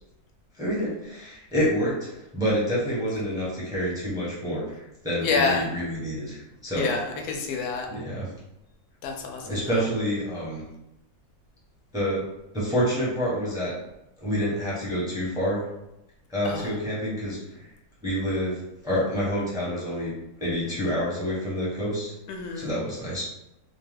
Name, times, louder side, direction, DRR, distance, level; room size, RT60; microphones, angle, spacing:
voice 1, 0.6-6.9 7.9-8.3 9.4-10.6 11.9-12.2 12.5-13.7 14.2-15.6 16.3-17.7 18.0-20.1 20.4-22.1 22.5-23.2, equal, 5° right, -7 dB, 0.8 m, -28 dB
voice 2, 5.2-5.7 6.8-7.9 9.0-9.6 16.4-16.7 22.3-22.7, left 4 dB, 90° left, 2 dB, 1.1 m, -27 dB
2.8 x 2.2 x 3.3 m, 0.87 s
omnidirectional pair, 1.6 m